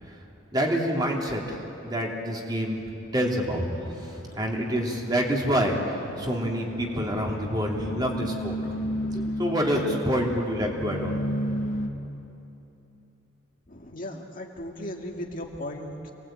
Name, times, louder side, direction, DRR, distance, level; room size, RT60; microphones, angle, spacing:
voice 1, 0.5-2.8 3.1-3.7 4.4-11.2, equal, 20° right, -1 dB, 2.9 m, -27 dB
sound 1, 3.3-11.9, equal, 85° left, 2.4 m, -34 dB
voice 2, 13.7-16.1, left 1 dB, 45° left, 1 dB, 2.1 m, -36 dB
27.5 x 19.5 x 8.9 m, 2.9 s
head